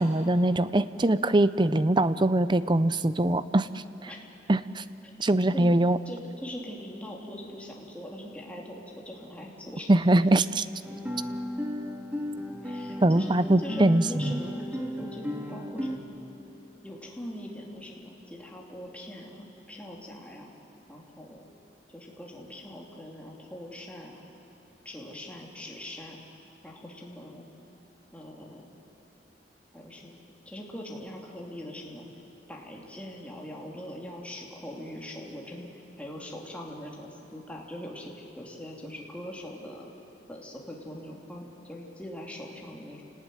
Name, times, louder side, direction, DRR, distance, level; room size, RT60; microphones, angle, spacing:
voice 1, 0.0-3.8 4.5-4.8 5.2-6.0 9.9-10.7 13.0-14.4, right 1 dB, 25° right, 14 dB, 0.6 m, -23 dB
voice 2, 6.1-9.9 12.6-13.3 13.6-13.8 14.1-16.1 16.8-20.5 20.9-21.4 21.9-24.2 24.8-26.2 26.6-27.5 28.1-28.7 29.7-32.1 32.5-39.9 40.3-43.0, left 1 dB, 10° left, -2 dB, 2.9 m, -42 dB
Guitar, 10.8-16.0, left 1 dB, 10° right, 1.9 m, -35 dB
28.5 x 19.0 x 9.4 m, 2.9 s
head